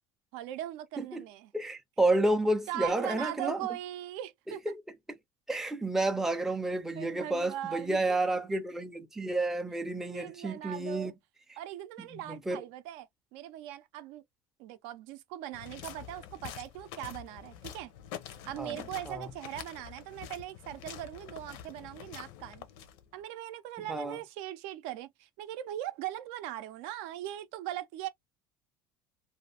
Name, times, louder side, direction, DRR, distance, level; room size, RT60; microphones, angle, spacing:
voice 1, 0.3-1.5 2.7-4.7 7.0-8.2 10.1-11.1 11.6-14.2 14.6-17.9 18.5-22.7 23.1-28.1, right 13 dB, 70° right, 0.5 m, -40 dB
voice 2, 1.5-3.7 4.5-4.7 5.5-11.1 12.0-12.6 18.6-18.8 19.1-19.3 23.9-24.2, right 2 dB, 5° right, 0.5 m, -30 dB
sound 1, 15.5-23.2, left 10 dB, 70° left, 0.7 m, -46 dB
2.7 x 2.4 x 3.3 m
cardioid pair, 145°, 10 cm